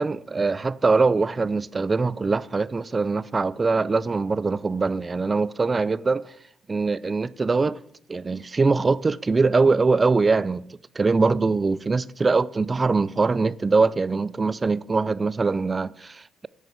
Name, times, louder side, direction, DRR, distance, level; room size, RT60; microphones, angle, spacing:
voice 1, 0.0-6.3 6.7-7.8 8.1-10.6 11.0-16.5, right 4 dB, 30° right, 0.4 m, -22 dB
9.7 x 4.8 x 6.8 m
cardioid pair, 90°, 0 cm